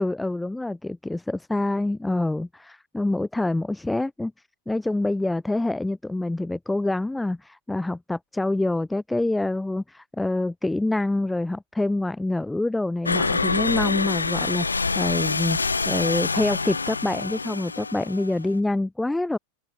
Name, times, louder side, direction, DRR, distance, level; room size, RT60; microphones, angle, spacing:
voice 1, 0.0-4.3 4.7-19.4, left 2 dB, 5° left, 0.5 m, -26 dB
sound 1, 13.1-18.6, left 4 dB, 80° left, 1.3 m, -26 dB
open air
figure-of-eight pair, 90°, 0 cm